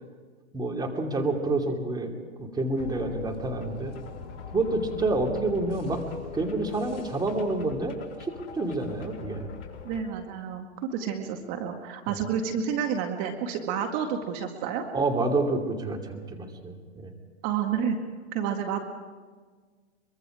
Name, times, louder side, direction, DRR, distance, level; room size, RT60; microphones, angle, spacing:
voice 1, 0.5-2.1 2.4-3.9 4.5-6.0 6.3-9.5 12.1-12.2 14.9-17.1, right 2 dB, 10° right, 2 dB, 2.7 m, -28 dB
sound 1, 2.8-10.0, left 6 dB, 55° left, 4.7 m, -42 dB
voice 2, 9.8-14.8 17.4-18.0 18.3-18.8, right 7 dB, 40° right, 4 dB, 2.0 m, -30 dB
23.5 x 23.5 x 5.0 m, 1.5 s
hypercardioid pair, 120°, 35 cm